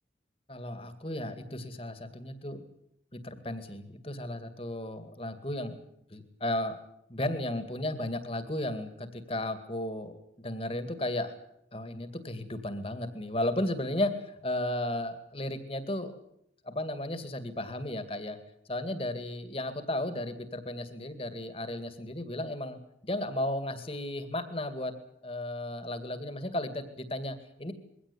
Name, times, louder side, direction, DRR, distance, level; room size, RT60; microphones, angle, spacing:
voice 1, 0.5-2.7 3.1-5.8 6.1-6.8 7.1-11.3 11.7-16.1 16.6-18.4 18.7-24.9 25.2-27.7, left 1 dB, 30° left, 10 dB, 2.3 m, -34 dB
22.5 x 17.0 x 10.0 m, 0.75 s
head